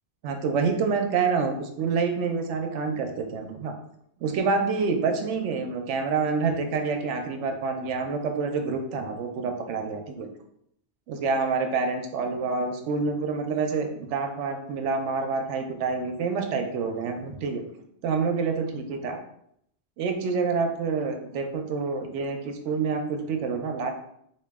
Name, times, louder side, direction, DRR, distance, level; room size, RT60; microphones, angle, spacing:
voice 1, 0.2-3.7 4.2-10.3 11.1-17.6 18.0-19.2 20.0-23.9, right 4 dB, 80° right, 5 dB, 0.9 m, -27 dB
2.9 x 2.7 x 3.4 m, 0.72 s
omnidirectional pair, 1.2 m